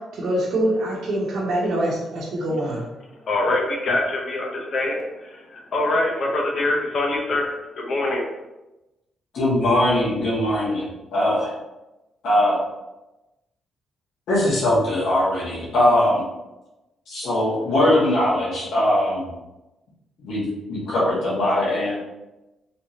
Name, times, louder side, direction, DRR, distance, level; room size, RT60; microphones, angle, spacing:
voice 1, 0.1-2.8, right 1 dB, 65° right, -6 dB, 0.9 m, -24 dB
voice 2, 3.3-8.2, left 2 dB, 50° left, -1 dB, 0.8 m, -24 dB
voice 3, 9.3-11.5 12.2-12.6 14.3-16.2 17.1-19.3 20.2-21.9, left 1 dB, 75° left, -8 dB, 1.2 m, -21 dB
3.3 x 3.0 x 2.8 m, 1.0 s
cardioid pair, 110°, 0 cm